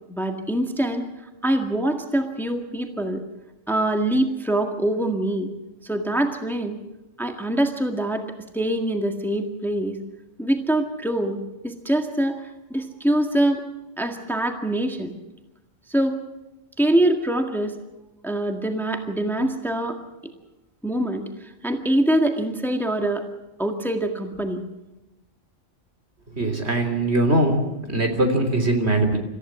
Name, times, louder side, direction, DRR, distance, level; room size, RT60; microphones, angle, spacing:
voice 1, 0.1-1.1 1.4-3.2 3.7-5.5 5.8-6.8 7.2-8.2 8.5-10.0 10.4-11.4 11.6-12.4 12.7-13.6 14.0-15.1 15.9-16.2 16.8-17.8 18.2-20.0 20.8-21.3 21.6-23.3 23.6-24.6, right 1 dB, ahead, 4 dB, 1.8 m, -24 dB
voice 2, 26.4-27.6 27.9-29.2, right 1 dB, 60° right, 5 dB, 3.6 m, -21 dB
27.0 x 15.0 x 7.5 m, 1.0 s
omnidirectional pair, 1.3 m